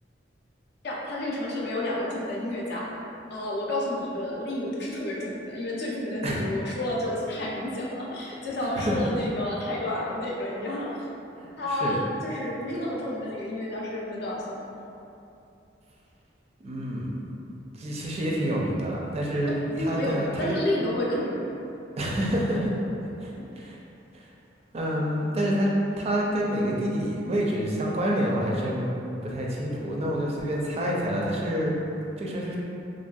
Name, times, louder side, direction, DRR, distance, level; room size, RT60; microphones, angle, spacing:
voice 1, 0.8-2.9 3.3-11.0 11.6-14.6 19.7-21.6, left 1 dB, 60° left, -4 dB, 0.5 m, -30 dB
voice 2, 8.6-9.0 11.4-12.0 16.6-17.1 17.7-20.6 22.0-22.7 23.2-23.8 24.1-24.2 24.7-25.7 26.0-28.9 29.2-31.7 32.2-32.6, equal, 35° right, -3 dB, 0.4 m, -28 dB
3.1 x 2.5 x 2.3 m, 2.8 s
head